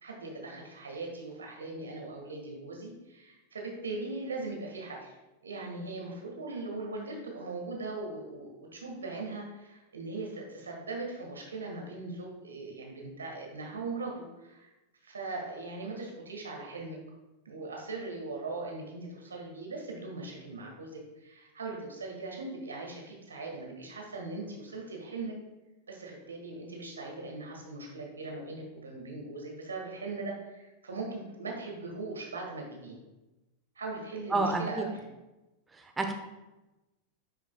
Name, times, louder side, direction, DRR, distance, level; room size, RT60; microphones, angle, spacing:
voice 1, 0.0-5.1 5.4-14.7 15.0-17.0 17.4-25.3 25.9-33.0 33.7-35.0, right 3 dB, 70° right, 0 dB, 1.7 m, -40 dB
voice 2, 34.3-34.9 35.8-36.1, right 3 dB, 10° right, 4 dB, 0.9 m, -29 dB
10.0 x 5.8 x 2.3 m, 1.0 s
figure-of-eight pair, 90°, 0 cm